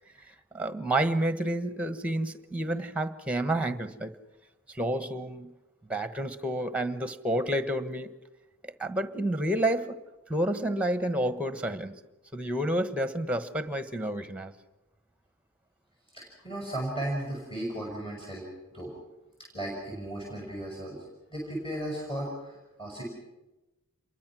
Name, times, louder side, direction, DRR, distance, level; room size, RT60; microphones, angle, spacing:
voice 1, 0.5-4.1 4.7-5.5 5.9-8.1 8.6-10.0 10.3-12.0 12.3-14.5, right 1 dB, 5° right, 11 dB, 1.2 m, -29 dB
voice 2, 16.1-18.9 19.5-21.0 21.3-23.0, right 1 dB, 25° left, -1 dB, 6.2 m, -35 dB
27.5 x 22.5 x 6.2 m, 1.0 s
head